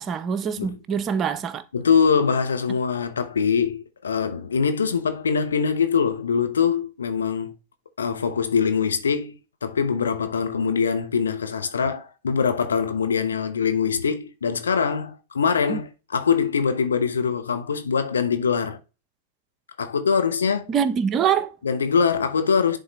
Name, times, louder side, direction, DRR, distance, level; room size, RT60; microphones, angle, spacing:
voice 1, 0.0-1.6 15.7-15.8 20.7-21.5, right 7 dB, 25° right, 0.7 m, -24 dB
voice 2, 1.7-7.6 8.0-18.8 19.8-20.7 21.6-22.8, left 6 dB, 70° left, 1.0 m, -23 dB
10.5 x 3.7 x 3.2 m
figure-of-eight pair, 100°, 0 cm